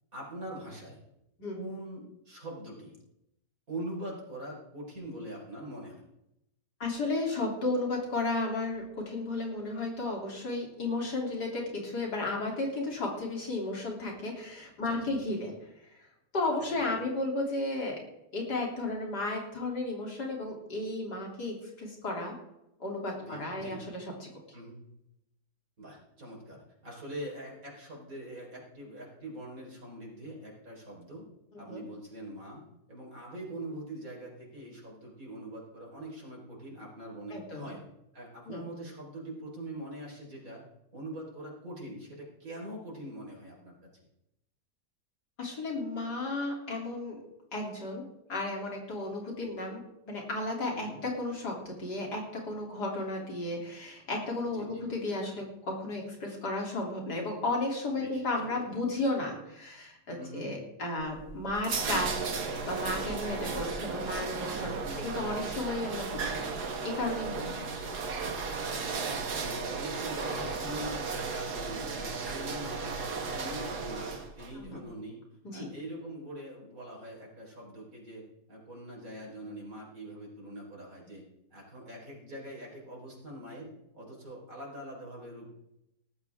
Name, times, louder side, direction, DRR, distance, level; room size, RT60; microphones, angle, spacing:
voice 1, 0.1-1.0 1.5-2.9 3.7-6.0 14.8-15.1 16.5-16.9 23.2-23.8 24.5-24.8 25.8-31.2 31.6-37.8 38.1-40.6 40.9-43.7 50.7-51.0 54.5-54.9 57.9-58.6 60.1-60.5 64.8-65.1 67.5-67.9 68.9-72.9 73.3-75.2 75.5-81.2 81.5-85.5, right 1 dB, 55° right, -2 dB, 5.0 m, -43 dB
voice 2, 6.8-15.5 16.3-18.0 18.3-22.4 22.8-24.3 31.7-31.8 37.3-37.7 38.5-38.7 45.4-47.2 47.5-66.6 66.8-67.8 74.5-74.8 75.4-75.7, left 2 dB, 80° left, -1 dB, 3.9 m, -34 dB
sound 1, 61.0-74.5, right 4 dB, 75° right, 2.0 m, -35 dB
18.0 x 13.5 x 3.6 m, 0.86 s
omnidirectional pair, 1.7 m